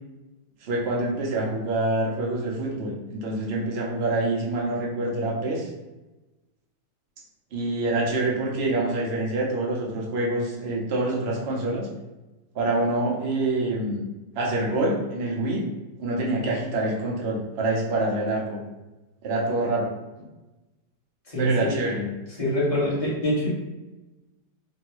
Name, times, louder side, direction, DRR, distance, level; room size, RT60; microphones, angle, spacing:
voice 1, 0.6-5.7 7.5-11.9 12.5-14.0 14.3-15.7 16.0-18.6 19.2-19.9 21.4-22.1, right 2 dB, 70° right, -2 dB, 0.6 m, -26 dB
voice 2, 21.3-21.8 22.4-23.5, equal, 25° left, -8 dB, 1.1 m, -24 dB
3.4 x 2.3 x 2.9 m, 1.1 s
omnidirectional pair, 1.8 m